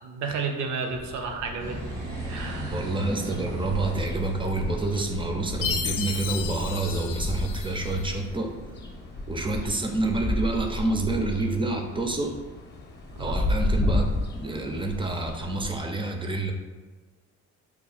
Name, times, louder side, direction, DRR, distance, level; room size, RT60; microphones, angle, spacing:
voice 1, 0.0-2.0 2.3-2.8 13.1-13.5, right 4 dB, 70° right, 4 dB, 0.6 m, -32 dB
sound 1, 0.9-15.8, left 1 dB, 35° left, 0.7 m, -33 dB
sound 2, 1.6-9.6, right 1 dB, 85° right, 1.2 m, -39 dB
voice 2, 2.7-8.5 9.3-12.4 13.2-14.1 14.3-16.5, right 2 dB, 15° right, 3 dB, 0.4 m, -28 dB
Chime, 5.6-8.1, left 7 dB, 85° left, 0.5 m, -33 dB
2.9 x 2.3 x 4.0 m, 1.3 s
cardioid pair, 90°, 30 cm